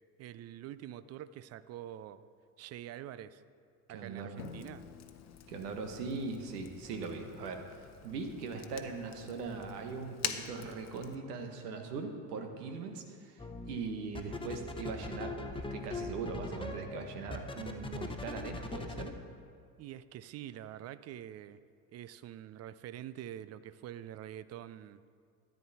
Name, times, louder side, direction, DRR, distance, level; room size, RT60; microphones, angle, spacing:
voice 1, 0.2-2.2 2.6-3.4 3.9-4.8 19.8-21.6 21.9-25.0, right 11 dB, 35° right, 15 dB, 0.5 m, -46 dB
voice 2, 3.9-4.4 5.5-19.2, right 4 dB, 75° right, 4 dB, 1.5 m, -40 dB
Drum, 4.4-6.9, left 6 dB, 65° left, 1.2 m, -51 dB
Fire, 4.4-11.2, left 9 dB, 35° left, 0.9 m, -46 dB
sound 1, 13.4-13.8 14.1-19.1, left 2 dB, 10° left, 1.0 m, -40 dB
13.5 x 9.8 x 4.2 m, 2.2 s
figure-of-eight pair, 65°, 48 cm